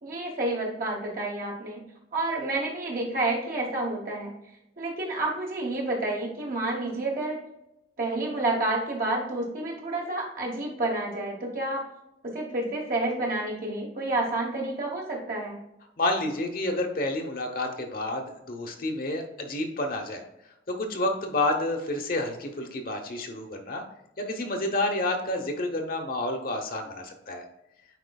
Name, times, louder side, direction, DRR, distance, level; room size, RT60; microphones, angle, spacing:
voice 1, 0.0-1.8 2.1-4.3 4.8-7.4 8.0-11.8 12.2-15.6, right 2 dB, 50° right, -2 dB, 1.1 m, -29 dB
voice 2, 16.0-20.2 20.7-23.8 24.2-27.4, left 2 dB, 50° left, 3 dB, 0.9 m, -29 dB
9.3 x 4.4 x 2.3 m, 0.86 s
head